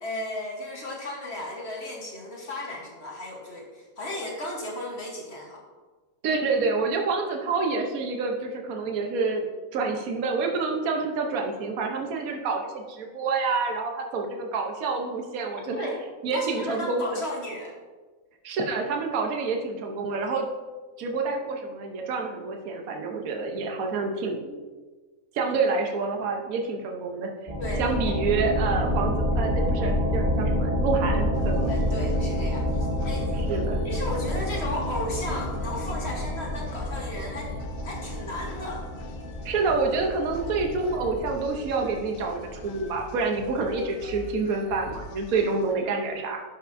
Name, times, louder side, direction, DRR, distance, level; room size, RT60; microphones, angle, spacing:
voice 1, 0.0-5.6 15.5-16.0 16.3-17.7 27.6-27.8 28.1-28.2 31.7-33.5 33.8-37.5 37.8-38.9 45.4-45.5, left 1 dB, 50° left, -1 dB, 1.3 m, -35 dB
voice 2, 6.2-15.9 16.2-17.2 18.4-20.5 21.0-24.6 25.3-27.5 27.8-31.7 33.4-33.8 39.4-46.4, right 4 dB, 70° right, 2 dB, 1.3 m, -28 dB
sound 1, 27.5-42.9, equal, 30° right, 1.3 m, -28 dB
sound 2, 31.3-45.7, left 5 dB, 75° left, 1.1 m, -44 dB
11.5 x 5.8 x 2.6 m, 1.3 s
omnidirectional pair, 1.6 m